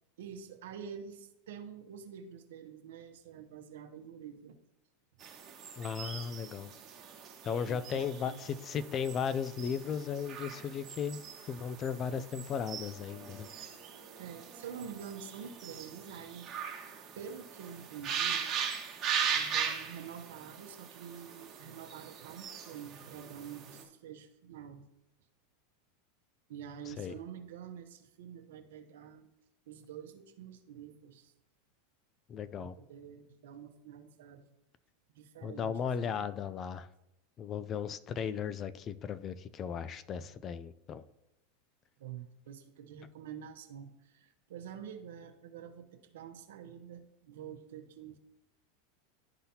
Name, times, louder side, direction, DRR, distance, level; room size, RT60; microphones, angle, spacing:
voice 1, 0.2-4.6 7.7-8.4 14.2-16.5 17.2-18.5 19.4-24.9 26.5-29.3 29.7-31.3 32.6-34.4 35.1-35.7 36.0-36.3 42.0-48.2, right 8 dB, 80° right, 6 dB, 0.9 m, -47 dB
sound 1, 5.2-23.8, right 7 dB, 30° right, 1.2 m, -40 dB
voice 2, 5.8-6.7 7.4-11.2 11.5-13.5 26.9-27.2 32.3-32.8 35.4-36.9 37.4-41.0, left 7 dB, 30° left, 15 dB, 0.4 m, -36 dB
11.5 x 3.9 x 2.8 m, 0.87 s
supercardioid pair, 130°, 0 cm